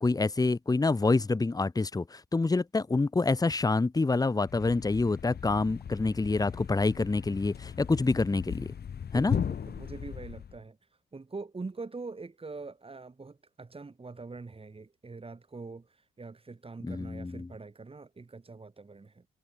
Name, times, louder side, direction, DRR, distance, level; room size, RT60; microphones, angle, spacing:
voice 1, 0.0-8.7 9.1-9.4 16.8-17.5, left 3 dB, 20° left, 1.1 m, -27 dB
Thump thud, 4.4-10.6, left 7 dB, 60° left, 6.9 m, -37 dB
voice 2, 9.1-10.8 11.1-19.3, right 3 dB, 30° right, 4.9 m, -43 dB
supercardioid pair, 60°, 19 cm